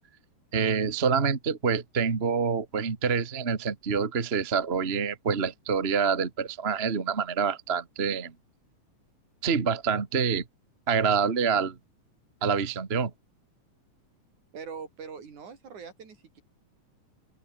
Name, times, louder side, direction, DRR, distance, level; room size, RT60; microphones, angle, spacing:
voice 1, 0.5-8.3 9.4-10.4 10.9-11.8 12.4-13.1, right 6 dB, 30° right, 1.2 m, -26 dB
voice 2, 14.5-16.4, right 6 dB, 65° right, 5.1 m, -42 dB
open air
omnidirectional pair, 3.7 m